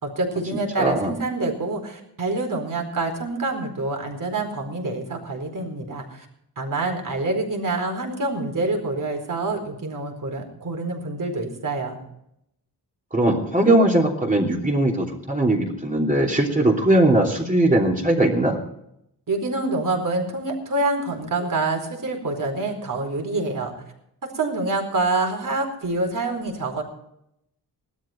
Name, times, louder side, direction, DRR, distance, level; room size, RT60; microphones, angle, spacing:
voice 1, 0.0-6.3 6.6-12.0 19.3-23.7 24.3-26.8, right 2 dB, 50° right, 3 dB, 4.4 m, -26 dB
voice 2, 0.8-1.1 13.1-18.6, right 1 dB, 20° right, -1 dB, 3.1 m, -20 dB
18.0 x 13.0 x 4.5 m, 0.78 s
wide cardioid pair, 115°, 41 cm